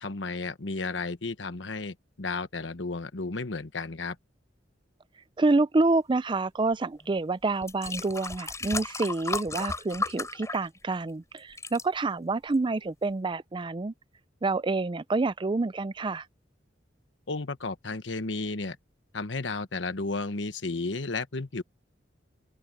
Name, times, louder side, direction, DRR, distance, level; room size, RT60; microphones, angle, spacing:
voice 1, 0.0-4.2 17.3-18.8 19.1-21.6, left 3 dB, 75° left, 1.2 m, -33 dB
voice 2, 5.4-13.9 14.4-16.2, right 3 dB, 25° right, 0.4 m, -27 dB
sound 1, 7.0-7.1 7.6-11.1 11.4-11.8 12.5-12.6, left 3 dB, 15° left, 4.9 m, -34 dB
open air
head